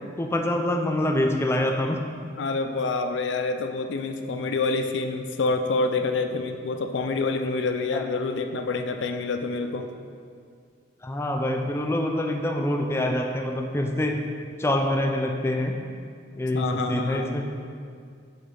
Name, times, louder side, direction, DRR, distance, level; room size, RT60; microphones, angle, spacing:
voice 1, 0.2-2.0 7.9-8.0 11.0-14.2 14.6-15.8 16.4-17.5, left 1 dB, 15° left, 2 dB, 0.4 m, -25 dB
voice 2, 2.4-9.9 16.5-17.3, left 3 dB, 80° left, 6 dB, 0.4 m, -27 dB
6.8 x 5.2 x 3.8 m, 2.2 s
head